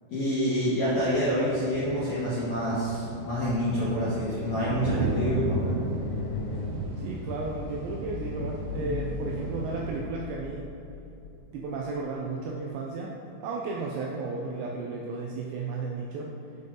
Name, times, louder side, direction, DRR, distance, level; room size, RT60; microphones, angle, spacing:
voice 1, 0.1-5.8 8.7-9.0, equal, 55° left, -11 dB, 2.1 m, -27 dB
sound 1, 0.6-10.0, right 3 dB, 55° right, 2.6 m, -35 dB
sound 2, 4.7-12.6, left 6 dB, 85° left, 3.0 m, -39 dB
voice 2, 7.0-10.7 11.5-16.3, right 3 dB, 80° right, -2 dB, 2.6 m, -34 dB
7.6 x 7.6 x 3.8 m, 2.8 s
omnidirectional pair, 5.7 m